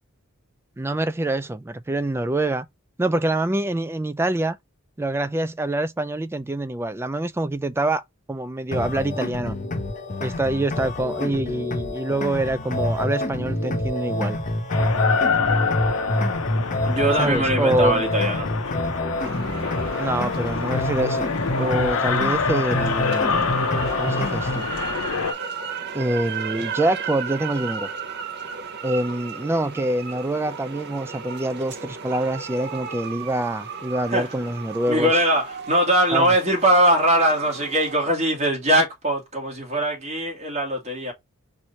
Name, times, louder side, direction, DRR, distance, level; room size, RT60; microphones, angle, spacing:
voice 1, 0.8-2.7 3.0-4.6 5.0-8.0 8.3-9.6 10.2-14.4 17.2-18.0 20.0-21.3 21.6-23.4 24.0-24.7 25.9-27.9 28.8-35.1 36.1-36.3, right 1 dB, 10° right, 0.3 m, -25 dB
sound 1, 8.7-24.7, left 1 dB, 35° left, 0.9 m, -27 dB
sound 2, 14.7-25.3, left 5 dB, 70° left, 0.7 m, -26 dB
voice 2, 16.8-18.7 34.1-34.3 34.9-41.1, right 1 dB, 30° right, 2.4 m, -21 dB
sound 3, 19.2-37.9, right 6 dB, 50° right, 0.9 m, -35 dB
4.7 x 2.7 x 4.2 m
head